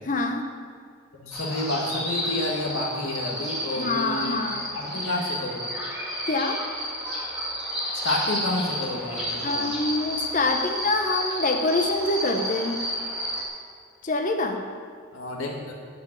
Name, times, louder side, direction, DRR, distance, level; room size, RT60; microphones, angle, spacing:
voice 1, 0.1-0.5 3.7-4.7 6.3-6.6 9.4-12.9 14.0-14.6, left 2 dB, 40° left, 4 dB, 0.9 m, -25 dB
voice 2, 1.1-4.4 4.7-5.7 7.9-9.6 15.1-15.7, left 1 dB, 75° left, -2 dB, 1.9 m, -29 dB
sound 1, 1.3-13.4, equal, ahead, 2.6 m, -31 dB
11.0 x 5.4 x 8.7 m, 2.1 s
head